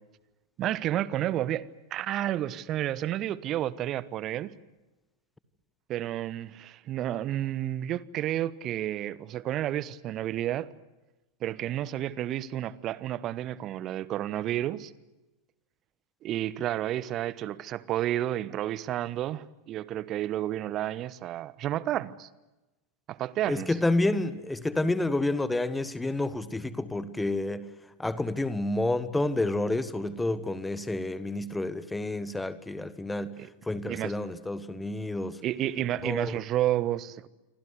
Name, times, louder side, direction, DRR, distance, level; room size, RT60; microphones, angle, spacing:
voice 1, 0.6-4.5 5.9-10.7 11.4-14.9 16.2-22.3 23.1-23.8 33.4-33.5 33.9-34.1 35.4-37.3, right 13 dB, 35° right, 1.1 m, -31 dB
voice 2, 23.5-27.7 28.0-33.4 33.7-35.4 36.0-36.3, left 2 dB, 5° left, 1.5 m, -29 dB
28.5 x 24.5 x 8.2 m
figure-of-eight pair, 90°, 0 cm